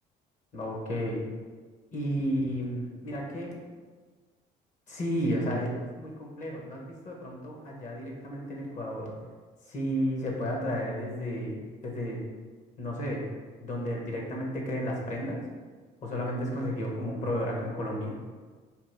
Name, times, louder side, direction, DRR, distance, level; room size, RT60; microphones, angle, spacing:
voice 1, 0.5-1.2 1.9-3.6 4.9-9.1 9.7-11.6 11.8-12.2 12.8-13.2 13.6-15.4 16.0-18.1, equal, 45° left, -1 dB, 1.0 m, -32 dB
3.5 x 2.5 x 4.6 m, 1.4 s
cardioid pair, 110°, 17 cm